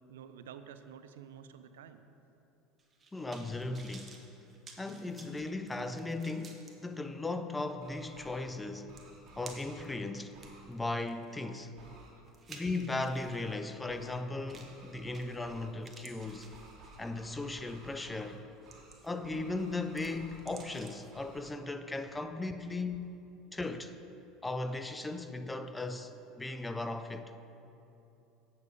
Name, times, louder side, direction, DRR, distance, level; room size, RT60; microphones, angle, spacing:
voice 1, 0.1-2.0 12.0-12.1, right 8 dB, 90° right, 0.4 m, -50 dB
sound 1, 2.8-6.7 7.3-7.4 8.5-8.6 9.0-9.9 10.3-13.4 14.5-14.8 15.1-15.5 15.8-17.1 17.7-17.9 18.4-19.3 19.6-21.1 21.4-21.5, right 4 dB, 30° right, 1.1 m, -54 dB
voice 2, 3.1-4.2 4.8-8.9 9.4-10.4 10.7-11.7 12.5-16.5 17.0-18.4 19.0-23.2 23.5-23.9 24.4-27.3, left 2 dB, 15° left, 0.5 m, -37 dB
sound 2, 7.7-8.4 8.9-9.9 10.3-10.6 11.8-12.1 13.2-13.5 13.9-14.2 14.5-15.7 16.2-18.4 18.6-19.0 19.2-20.8 21.1-21.5, right 3 dB, 50° right, 2.1 m, -56 dB
8.1 x 6.9 x 5.0 m
supercardioid pair, 95°, 0 cm